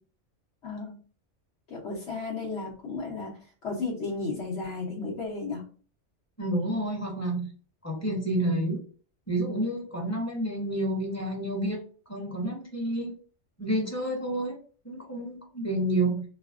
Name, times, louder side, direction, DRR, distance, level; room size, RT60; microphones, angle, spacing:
voice 1, 0.6-1.0 1.7-5.6, left 3 dB, 70° left, -4 dB, 1.2 m, -34 dB
voice 2, 6.4-7.4 7.8-8.8 9.3-11.8 12.1-13.1 13.6-14.6 14.8-16.2, right 1 dB, 15° left, -1 dB, 1.0 m, -29 dB
4.4 x 2.1 x 2.4 m, 0.40 s
omnidirectional pair, 1.2 m